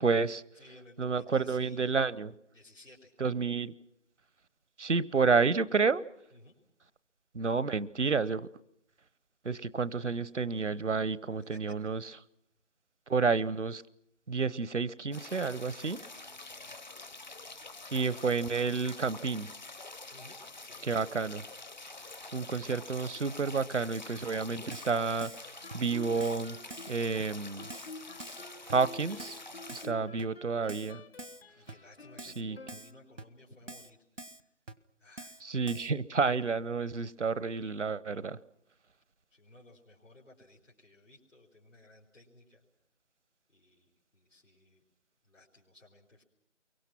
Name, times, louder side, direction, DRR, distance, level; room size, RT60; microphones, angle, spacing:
voice 1, 0.0-0.4 1.0-2.3 3.2-3.7 4.8-6.0 7.3-8.5 9.4-12.0 13.1-13.8 14.3-16.0 17.9-19.5 20.8-21.4 22.3-26.6 26.9-27.7 28.7-29.4 29.7-31.0 32.2-32.6 35.4-38.4, right 4 dB, 70° right, 19 dB, 0.9 m, -30 dB
voice 2, 0.5-2.0 2.5-3.1 6.3-6.5 11.4-11.8 16.3-16.8 20.1-20.4 20.6-20.9 21.9-22.7 29.8-30.2 31.6-34.4 35.0-35.4 35.7-36.0 39.3-42.6 43.5-44.8 45.2-46.2, left 1 dB, 90° left, -3 dB, 4.6 m, -58 dB
sound 1, 15.1-29.9, left 3 dB, 35° left, 0.9 m, -47 dB
Keyboard (musical), 24.2-24.3 24.7-24.9 25.2-25.4 25.7-25.8 26.2-26.4 26.7-26.9 27.2-27.3 27.7-27.9 28.2-28.4 28.7-28.8 29.2-29.4 29.7-29.9 30.2-30.3 30.7-30.9 31.2-31.4 31.7-31.8 32.2-32.4 32.7-32.9 33.2-33.3 33.7-33.9 34.2-34.4 34.7-34.8 35.2-35.4 35.7-35.9, right 2 dB, 85° right, 1.4 m, -46 dB
Guitar, 25.6-33.3, left 2 dB, 55° left, 1.1 m, -50 dB
29.0 x 23.5 x 6.0 m, 0.75 s
figure-of-eight pair, 160°, 37 cm